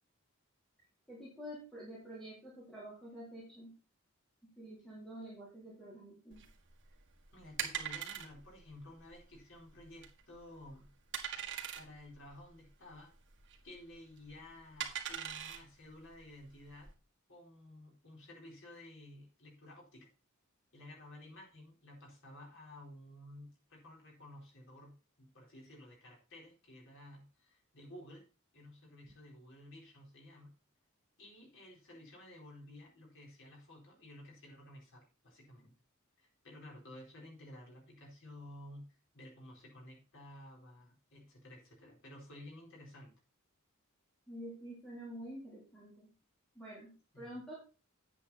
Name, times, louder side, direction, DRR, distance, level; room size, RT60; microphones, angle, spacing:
voice 1, 1.1-3.7 4.6-6.4 44.3-46.1 46.6-47.5, equal, 5° left, -7 dB, 3.9 m, -48 dB
sound 1, 6.3-16.9, right 9 dB, 60° right, 1.9 m, -43 dB
voice 2, 7.3-10.9 11.7-13.1 13.6-16.9 17.3-20.1 20.7-28.2 28.5-30.6 31.2-35.7 36.2-43.1 47.1-47.4, left 1 dB, 65° left, -2 dB, 4.5 m, -54 dB
9.5 x 8.7 x 4.3 m, 0.34 s
head